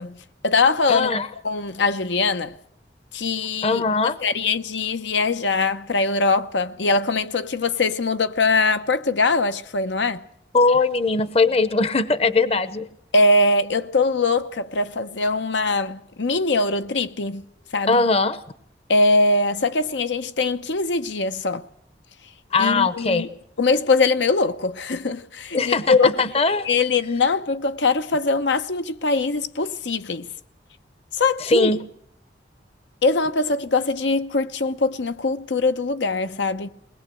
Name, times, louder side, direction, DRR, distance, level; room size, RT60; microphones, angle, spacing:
voice 1, 0.0-2.5 3.1-10.2 13.1-17.4 17.7-18.0 18.9-21.7 22.6-23.3 23.6-26.2 26.6-30.3 31.2-31.7 33.0-36.7, left 3 dB, 85° left, 0.9 m, -22 dB
voice 2, 0.9-1.3 3.6-4.2 10.5-12.9 17.9-18.4 22.5-23.3 25.5-26.7 31.4-31.8, left 3 dB, 35° left, 0.8 m, -20 dB
21.5 x 20.0 x 7.7 m
head